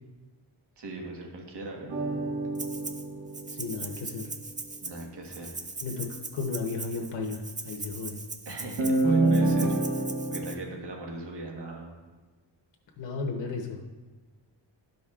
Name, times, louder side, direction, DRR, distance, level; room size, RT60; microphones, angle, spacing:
voice 1, 0.8-1.9 4.8-5.5 8.4-12.0, right 2 dB, 65° right, 0 dB, 1.5 m, -40 dB
sound 1, 1.9-4.5 8.8-10.5, right 2 dB, 80° right, 1.6 m, -27 dB
Rattle (instrument), 2.5-3.0 3.3-10.5, right 3 dB, 20° right, 0.4 m, -40 dB
voice 2, 3.5-4.3 5.8-6.1 6.3-8.1 13.0-13.8, left 4 dB, 75° left, 1 dB, 0.9 m, -34 dB
12.0 x 5.2 x 2.4 m, 1.3 s
wide cardioid pair, 135°, 44 cm